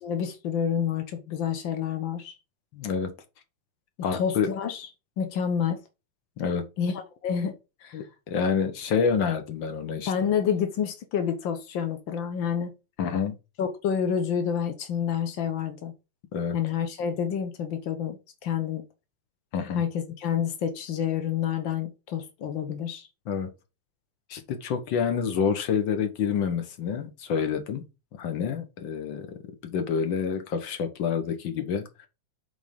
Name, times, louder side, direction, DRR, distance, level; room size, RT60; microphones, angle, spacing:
voice 1, 0.0-2.3 4.1-4.9 5.2-5.8 6.8-7.5 7.8-8.0 10.1-12.7 13.6-15.9 16.5-18.8 19.7-23.1, left 8 dB, 85° left, 1.0 m, -28 dB
voice 2, 2.7-3.1 4.0-4.5 6.4-6.6 7.9-10.1 13.0-13.4 16.3-16.5 19.5-19.8 23.3-23.5 24.3-27.8 28.1-32.1, left 6 dB, 60° left, 1.2 m, -28 dB
8.0 x 4.4 x 5.3 m
omnidirectional pair, 3.7 m